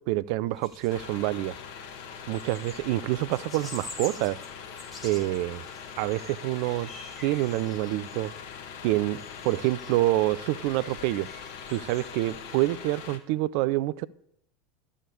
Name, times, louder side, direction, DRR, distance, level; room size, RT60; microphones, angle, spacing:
voice 1, 0.1-1.6 2.3-4.4 5.0-5.6 6.0-6.9 7.2-8.3 8.8-11.3 11.7-14.1, right 17 dB, 55° right, 19 dB, 0.4 m, -27 dB
sound 1, 0.5-12.7, left 2 dB, 25° left, 2.9 m, -48 dB
sound 2, 0.9-13.2, left 7 dB, 55° left, 1.2 m, -42 dB
12.0 x 7.2 x 8.4 m, 0.71 s
figure-of-eight pair, 75°, 0 cm